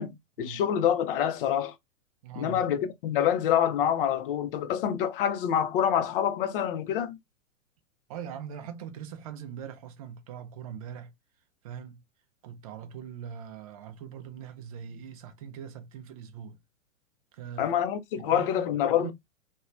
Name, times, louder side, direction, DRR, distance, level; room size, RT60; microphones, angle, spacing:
voice 1, 0.0-1.7 2.4-7.2 17.6-19.1, left 9 dB, 45° left, 0.5 m, -26 dB
voice 2, 2.2-2.8 8.1-11.1 11.6-12.0 12.4-16.6 17.3-17.7 18.2-19.1, right 8 dB, 30° right, 0.4 m, -41 dB
2.8 x 2.2 x 2.4 m
figure-of-eight pair, 110°, 41 cm